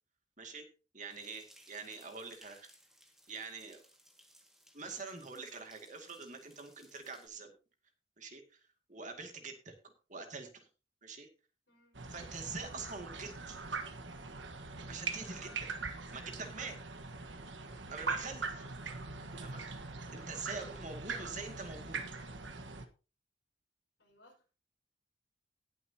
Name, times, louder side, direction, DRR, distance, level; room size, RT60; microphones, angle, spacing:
voice 1, 0.9-2.7 3.3-3.8 4.7-7.5 8.2-8.6 8.9-9.7 10.1-10.7 11.0-11.3 12.1-13.6 14.9-15.5 16.1-16.8 17.9-18.5 19.4-19.6 20.1-22.0, right 4 dB, 40° right, 5 dB, 2.2 m, -45 dB
sound 1, 1.1-7.3, equal, ahead, 2.0 m, -63 dB
voice 2, 5.3-5.7 11.7-12.0 15.4-15.7 18.5-18.8 19.5-19.8 24.0-24.4, left 2 dB, 60° left, 1 dB, 5.4 m, -60 dB
sound 2, 11.9-22.9, right 4 dB, 75° right, 1.4 m, -42 dB
19.0 x 8.0 x 2.9 m, 0.33 s
head